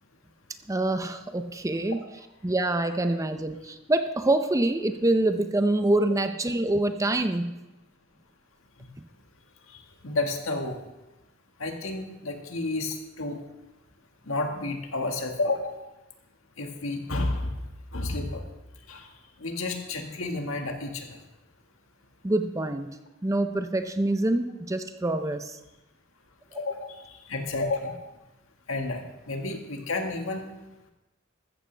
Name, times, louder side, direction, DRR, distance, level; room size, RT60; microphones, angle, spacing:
voice 1, 0.7-2.0 2.4-7.5 22.2-22.9 23.2-25.6 26.5-26.6, right 2 dB, 15° right, 8 dB, 0.6 m, -26 dB
voice 2, 9.7-10.8 11.6-13.4 14.3-15.8 16.6-17.5 17.9-18.4 18.9-19.1 19.4-21.2 26.6-28.0 28.7-30.5, left 2 dB, 85° left, 3 dB, 1.8 m, -31 dB
14.5 x 14.0 x 3.4 m, 0.99 s
head